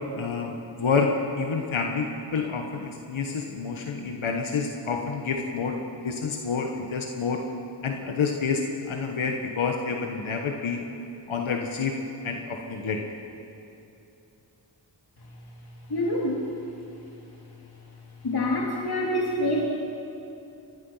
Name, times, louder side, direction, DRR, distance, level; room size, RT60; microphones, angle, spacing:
voice 1, 0.2-7.4 7.8-10.9 11.3-12.0 12.2-13.0, left 5 dB, 85° left, 2 dB, 1.6 m, -28 dB
voice 2, 15.9-16.4 18.2-19.7, left 1 dB, 50° left, -3 dB, 3.1 m, -26 dB
26.0 x 21.0 x 5.8 m, 2.8 s
cardioid pair, 50°, 46 cm